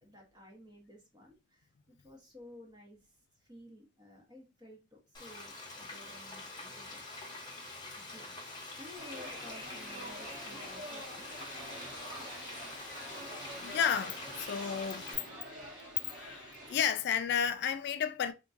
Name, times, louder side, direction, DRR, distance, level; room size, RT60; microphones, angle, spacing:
voice 1, 0.0-3.0 3.4-7.7 7.9-8.4 8.8-11.5, left 1 dB, 20° right, 1.2 m, -54 dB
Frying (food), 5.1-15.1, left 2 dB, 25° left, 1.0 m, -46 dB
sound 1, 9.0-16.8, equal, 80° right, 1.4 m, -46 dB
voice 2, 13.6-15.1 16.1-18.3, left 7 dB, 60° left, 0.3 m, -32 dB
3.6 x 2.9 x 2.6 m
head